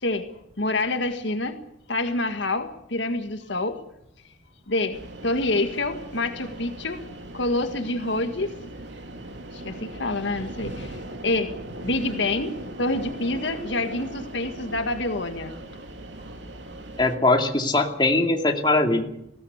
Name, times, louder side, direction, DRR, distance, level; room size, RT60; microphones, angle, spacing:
voice 1, 0.6-1.6 1.9-3.8 4.7-7.0 7.3-8.6 9.5-11.0 11.2-11.5 11.8-15.5, left 2 dB, 75° left, 7 dB, 1.8 m, -27 dB
sound 1, 4.9-17.2, right 1 dB, 75° right, 2.8 m, -39 dB
voice 2, 17.0-19.0, left 2 dB, 25° left, 3 dB, 2.5 m, -21 dB
21.0 x 17.5 x 8.2 m, 0.77 s
head